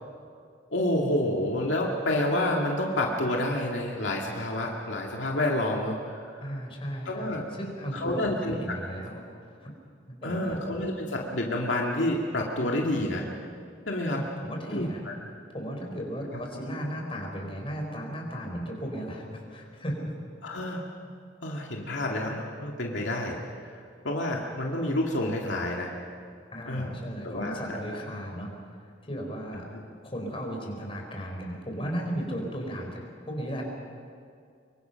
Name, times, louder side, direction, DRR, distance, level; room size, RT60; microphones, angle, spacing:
voice 1, 0.7-6.5 7.1-7.4 7.9-8.6 10.2-13.3 13.9-14.2 14.7-15.1 20.4-20.9 21.4-23.4 24.0-25.9 26.7-27.0 27.2-27.8, left 1 dB, 75° left, -1 dB, 2.3 m, -29 dB
voice 2, 6.4-9.7 10.1-10.6 14.0-15.0 15.5-20.1 26.5-28.5 29.0-29.6 30.0-33.0 33.3-33.6, equal, 30° left, 0 dB, 4.5 m, -35 dB
25.0 x 23.5 x 5.9 m, 2.3 s
head